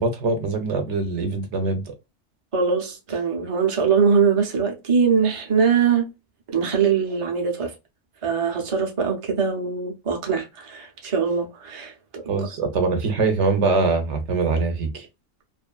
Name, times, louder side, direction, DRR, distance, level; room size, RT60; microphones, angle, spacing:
voice 1, 0.0-1.9 12.3-15.1, right 3 dB, 75° right, 1.1 m, -23 dB
voice 2, 2.5-6.1 6.5-7.8 8.2-12.2, right 6 dB, 35° right, 0.7 m, -22 dB
2.6 x 2.5 x 2.3 m
omnidirectional pair, 1.2 m